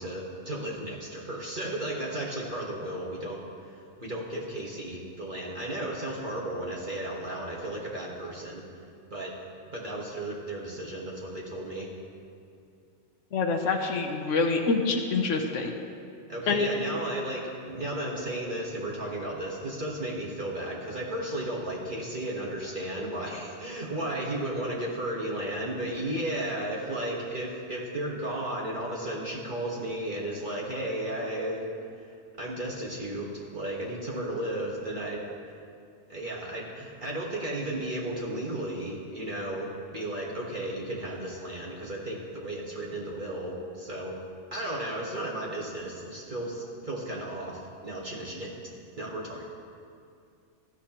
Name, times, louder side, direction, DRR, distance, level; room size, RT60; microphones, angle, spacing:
voice 1, 0.0-8.6 9.1-9.3 9.7-11.9 16.3-31.7 32.4-35.3 36.1-44.2 44.5-48.6 49.0-49.4, right 1 dB, 45° right, -4 dB, 1.5 m, -34 dB
voice 2, 13.3-15.7 16.5-16.7, left 4 dB, 90° left, 3 dB, 1.2 m, -26 dB
16.5 x 12.5 x 2.9 m, 2.5 s
omnidirectional pair, 1.2 m